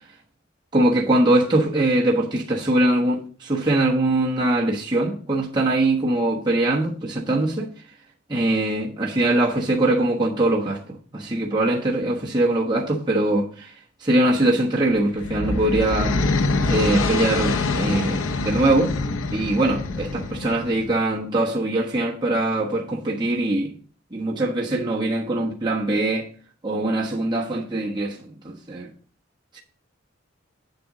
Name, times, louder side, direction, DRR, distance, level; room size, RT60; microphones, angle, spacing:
voice 1, 0.7-7.7 8.3-10.8 11.1-13.7 14.0-16.2 16.7-18.9 19.3-23.7 24.1-26.3 26.6-28.2 28.4-28.9 29.5-29.6, right 1 dB, 20° right, 1.2 m, -22 dB
sound 1, 14.9-21.0, left 3 dB, 85° left, 0.8 m, -25 dB
7.9 x 7.8 x 3.9 m
head